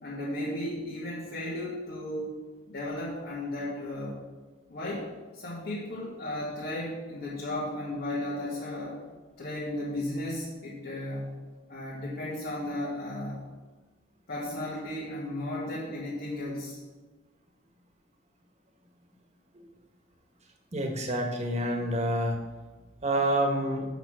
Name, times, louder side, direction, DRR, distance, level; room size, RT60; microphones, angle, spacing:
voice 1, 0.0-2.4 2.7-4.2 4.7-5.1 5.3-9.0 9.4-11.3 11.7-13.4 14.3-16.8, left 1 dB, 55° left, -6 dB, 1.6 m, -35 dB
voice 2, 20.7-22.4 23.0-23.9, right 1 dB, 35° right, 2 dB, 1.4 m, -27 dB
6.7 x 6.2 x 6.2 m, 1.2 s
head